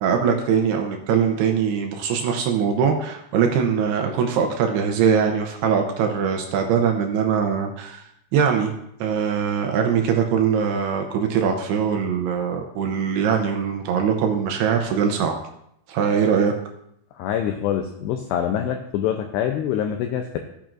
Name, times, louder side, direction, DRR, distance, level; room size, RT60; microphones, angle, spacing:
voice 1, 0.0-8.0 8.3-8.7 9.0-15.4 15.9-16.5, right 7 dB, 80° right, 3 dB, 2.4 m, -22 dB
voice 2, 17.2-20.4, left 9 dB, 90° left, 5 dB, 2.4 m, -25 dB
13.5 x 8.9 x 2.5 m, 0.75 s
omnidirectional pair, 5.5 m